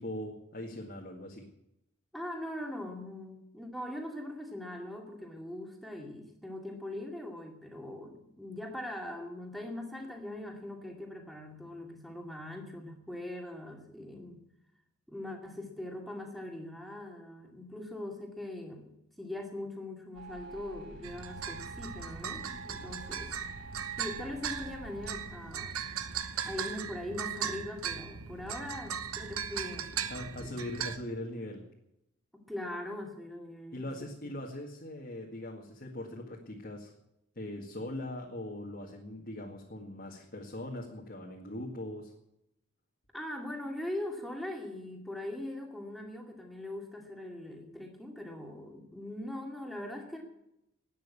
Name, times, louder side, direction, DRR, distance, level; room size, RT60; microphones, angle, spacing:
voice 1, 0.0-1.4 30.1-31.6 33.7-36.9 37.4-42.1, left 1 dB, 45° left, -1 dB, 1.9 m, -41 dB
voice 2, 2.1-14.5 15.1-18.9 19.2-23.3 24.0-25.8 26.5-30.5 32.3-34.1 43.1-50.2, left 1 dB, ahead, 2 dB, 2.3 m, -41 dB
sound 1, 20.1-25.2, right 3 dB, 55° right, 3.7 m, -48 dB
sound 2, 21.0-31.0, right 7 dB, 80° right, 1.1 m, -38 dB
12.5 x 9.4 x 9.7 m, 0.84 s
head